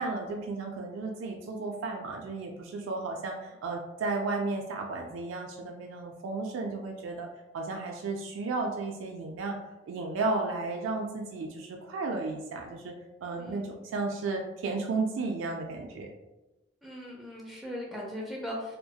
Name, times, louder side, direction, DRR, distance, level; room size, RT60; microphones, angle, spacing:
voice 1, 0.0-7.3 7.5-9.6 9.9-12.9 13.2-16.1, right 3 dB, 85° right, 1 dB, 0.3 m, -33 dB
voice 2, 13.2-13.7 16.8-18.8, equal, ahead, -4 dB, 0.4 m, -39 dB
2.7 x 2.1 x 2.3 m, 1.0 s
head